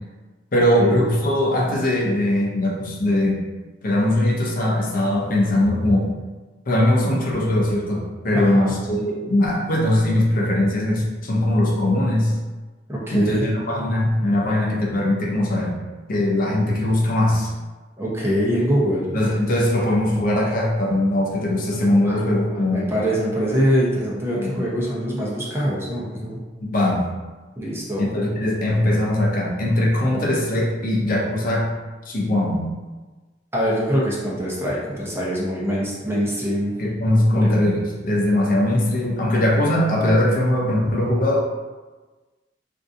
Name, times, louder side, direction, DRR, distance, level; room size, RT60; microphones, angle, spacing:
voice 1, 0.5-3.4 3.8-6.1 6.7-12.4 13.1-15.8 16.1-17.5 19.1-22.9 24.3-24.7 26.6-27.1 28.0-31.7 32.1-32.7 36.8-41.4, left 1 dB, 50° left, -3 dB, 0.6 m, -20 dB
voice 2, 12.9-13.4 18.0-19.1 21.9-22.2 22.7-26.4 27.6-28.0 30.1-30.2 33.5-36.7 37.3-37.5, equal, 15° right, -6 dB, 0.7 m, -23 dB
3.6 x 2.6 x 2.5 m, 1.2 s
head